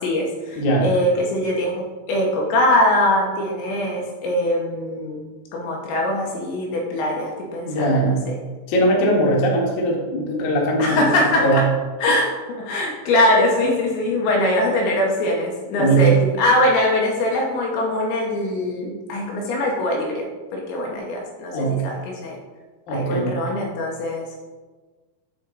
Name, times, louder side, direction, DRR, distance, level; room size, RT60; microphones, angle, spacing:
voice 1, 0.0-5.2 5.5-8.2 10.8-11.6 12.0-12.3 12.6-22.0 22.2-22.4 22.9-24.4, left 1 dB, 80° left, -1 dB, 3.0 m, -22 dB
voice 2, 0.6-0.9 7.6-8.2 8.7-10.9 11.4-11.6 15.8-16.2 21.5-21.8 22.9-23.4, right 2 dB, 60° left, -4 dB, 2.1 m, -20 dB
10.0 x 3.5 x 3.9 m, 1.3 s
omnidirectional pair, 5.5 m